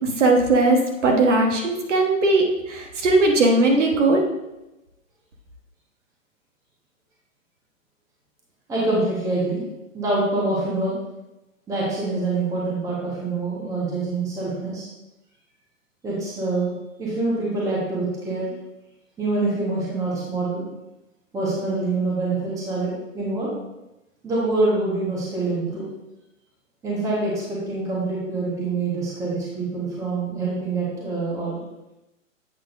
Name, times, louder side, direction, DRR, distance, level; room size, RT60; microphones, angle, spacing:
voice 1, 0.0-4.2, right 2 dB, 60° right, 1 dB, 1.3 m, -19 dB
voice 2, 8.7-9.6 9.9-10.9 11.7-14.9 16.0-18.5 19.2-20.6 21.3-23.5 24.2-25.8 26.8-31.6, right 2 dB, 10° right, -6 dB, 1.2 m, -25 dB
8.1 x 5.9 x 2.6 m, 0.95 s
hypercardioid pair, 150°, 41 cm